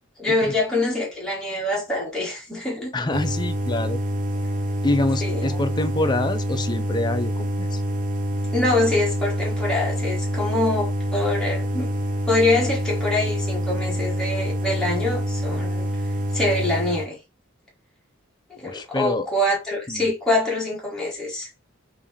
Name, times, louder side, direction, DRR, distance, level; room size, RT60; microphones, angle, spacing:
voice 1, 0.2-2.9 5.2-5.6 8.5-11.9 12.3-15.9 16.3-17.2 18.6-21.5, left 2 dB, 5° left, 1.2 m, -24 dB
voice 2, 2.9-4.0 4.8-7.8 18.6-19.3 19.9-20.1, left 2 dB, 20° left, 0.5 m, -26 dB
sound 1, 3.1-17.1, equal, 40° right, 0.7 m, -26 dB
3.7 x 2.7 x 3.5 m
head